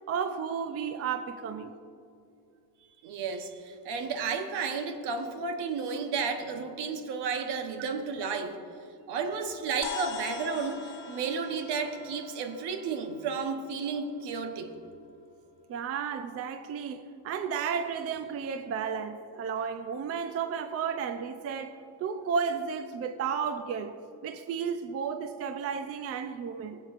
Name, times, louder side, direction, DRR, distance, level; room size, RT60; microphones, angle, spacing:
voice 1, 0.1-1.7 7.8-7.9 15.7-24.0 24.2-26.8, right 6 dB, 35° right, 0.4 m, -33 dB
voice 2, 3.0-8.6 9.1-14.7, right 5 dB, 70° right, 1.1 m, -32 dB
sound 1, 9.8-14.4, left 6 dB, 50° left, 0.9 m, -42 dB
16.0 x 7.8 x 2.5 m
cardioid pair, 110°, 42 cm